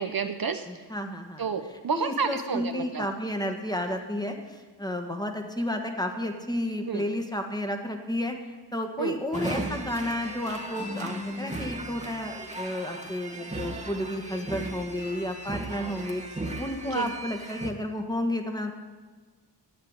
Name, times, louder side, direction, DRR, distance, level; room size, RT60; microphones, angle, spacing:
voice 1, 0.0-0.8 1.4-3.0 6.9-7.0 9.0-9.2 16.9-17.1, right 5 dB, 55° right, 8 dB, 0.8 m, -30 dB
voice 2, 0.7-1.5 1.9-8.4 8.7-18.7, left 1 dB, 10° left, 4 dB, 1.5 m, -32 dB
sound 1, 9.3-17.7, right 1 dB, 15° right, 1.4 m, -36 dB
11.5 x 8.2 x 9.6 m, 1.3 s
wide cardioid pair, 85°, 43 cm